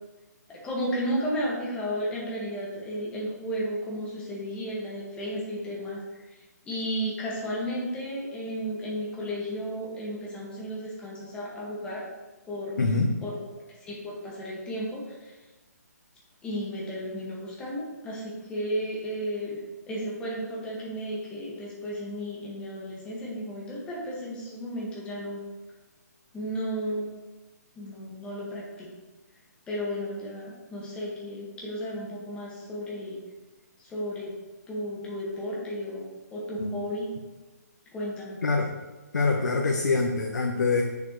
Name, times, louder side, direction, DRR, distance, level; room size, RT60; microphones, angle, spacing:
voice 1, 0.5-6.0 6.7-12.0 12.5-12.8 13.2-13.4 13.9-15.3 16.4-19.6 19.9-25.4 26.3-27.1 27.8-28.9 29.7-33.2 33.8-34.3 34.7-37.1 37.9-38.4, equal, 10° left, -5 dB, 2.0 m, -33 dB
voice 2, 12.8-13.1 36.6-36.8 38.4-38.7 39.1-40.8, left 3 dB, 90° left, 1 dB, 1.0 m, -24 dB
8.2 x 6.9 x 3.3 m, 1.2 s
hypercardioid pair, 155°, 9 cm